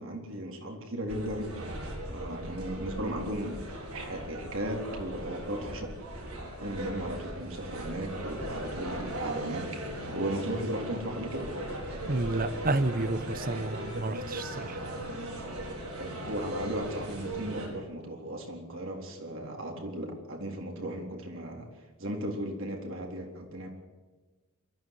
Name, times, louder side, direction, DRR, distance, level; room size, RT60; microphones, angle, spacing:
voice 1, 0.0-1.6 2.1-5.9 6.6-11.5 16.0-21.7 22.0-23.7, right 1 dB, 60° right, 2 dB, 3.9 m, -36 dB
sound 1, 1.1-17.7, right 1 dB, 80° right, 4.9 m, -38 dB
voice 2, 12.1-14.8, right 2 dB, 40° right, 13 dB, 1.1 m, -30 dB
22.5 x 13.5 x 9.8 m, 1.3 s
head